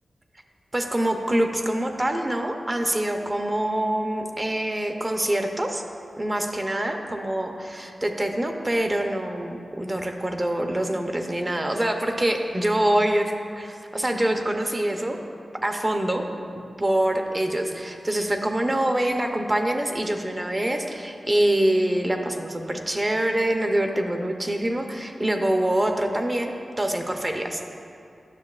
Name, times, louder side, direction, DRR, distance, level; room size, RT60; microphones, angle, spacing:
voice 1, 0.7-5.8 6.2-15.2 15.6-16.2 16.8-27.6, right 1 dB, 25° right, 4 dB, 0.6 m, -25 dB
10.5 x 6.4 x 2.4 m, 2.5 s
wide cardioid pair, 65°, 0 cm